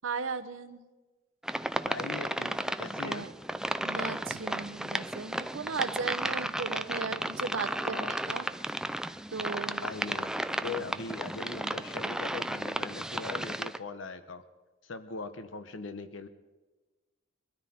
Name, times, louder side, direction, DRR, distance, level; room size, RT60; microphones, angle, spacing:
voice 1, 0.0-0.8 3.0-3.3 3.8-8.5 9.3-9.8 10.7-10.9, right 4 dB, 90° right, 8 dB, 0.9 m, -36 dB
sound 1, 1.4-13.8, right 1 dB, 5° right, 0.4 m, -34 dB
voice 2, 1.8-3.3 7.8-8.1 9.8-14.4 14.8-16.3, left 4 dB, 80° left, 10 dB, 0.9 m, -40 dB
22.5 x 13.5 x 4.3 m, 1.2 s
head